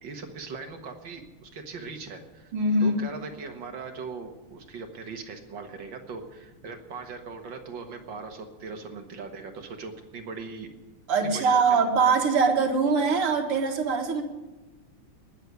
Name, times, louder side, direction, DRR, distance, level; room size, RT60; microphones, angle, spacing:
voice 1, 0.0-2.5 2.8-10.7 11.2-11.9, right 4 dB, 60° right, 5 dB, 2.2 m, -40 dB
voice 2, 2.5-3.0 11.1-14.2, right 4 dB, 80° right, 3 dB, 2.6 m, -22 dB
19.5 x 6.7 x 9.6 m, 1.2 s
omnidirectional pair, 2.4 m